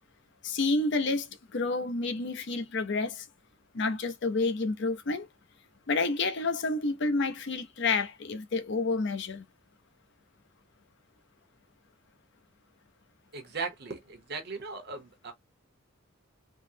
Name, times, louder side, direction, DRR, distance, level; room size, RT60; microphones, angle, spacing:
voice 1, 0.4-3.3 3.7-5.3 5.9-9.4, left 3 dB, 60° left, 0.6 m, -29 dB
voice 2, 13.3-15.3, right 4 dB, 50° right, 0.8 m, -38 dB
3.6 x 2.0 x 2.7 m
head